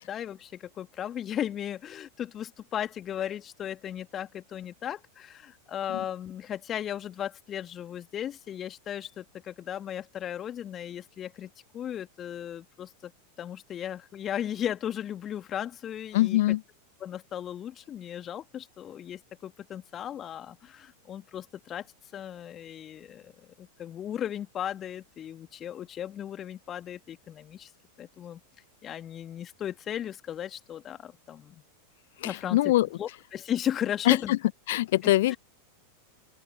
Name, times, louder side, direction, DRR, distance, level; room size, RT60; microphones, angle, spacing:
voice 1, 0.0-13.1 13.4-16.6 17.0-21.9 22.1-23.3 23.6-27.7 28.0-28.4 28.8-31.6 32.2-34.4 35.0-35.4, left 10 dB, 25° left, 2.5 m, -36 dB
voice 2, 16.1-16.6 32.2-32.9 34.1-34.4 34.7-35.4, left 16 dB, 55° left, 0.8 m, -23 dB
open air
figure-of-eight pair, 90°, 0 cm